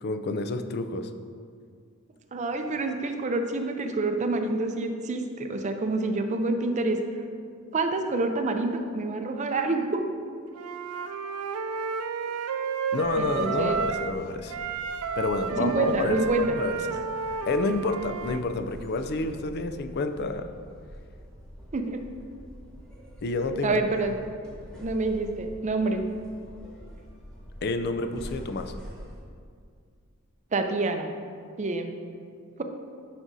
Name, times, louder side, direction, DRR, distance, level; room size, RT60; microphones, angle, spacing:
voice 1, 0.0-1.1 12.9-14.6 15.2-16.2 16.5-17.0 17.5-20.5 23.2-23.8 27.6-28.7, left 3 dB, 50° left, 8 dB, 0.4 m, -29 dB
voice 2, 2.3-7.0 7.7-10.0 13.2-13.8 15.6-16.5 21.7-22.0 23.6-24.2 24.8-26.0 30.5-31.1 31.6-31.9, right 3 dB, 35° right, 5 dB, 0.5 m, -27 dB
Wind instrument woodwind instrument, 10.5-14.2 14.5-18.4, right 6 dB, 85° right, 0.4 m, -32 dB
sound 1, 13.0-29.2, equal, 5° left, 1.3 m, -46 dB
9.7 x 6.1 x 2.7 m, 2.2 s
head